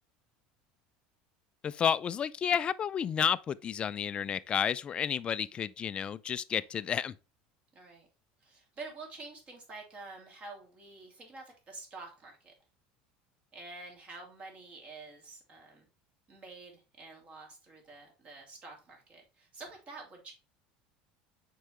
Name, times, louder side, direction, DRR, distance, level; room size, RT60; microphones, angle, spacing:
voice 1, 1.6-7.1, left 8 dB, 30° left, 0.4 m, -31 dB
voice 2, 7.7-8.1 8.4-12.5 13.5-15.9 16.3-20.3, right 3 dB, 35° right, 2.7 m, -48 dB
6.5 x 4.7 x 3.2 m
cardioid pair, 135°, 4 cm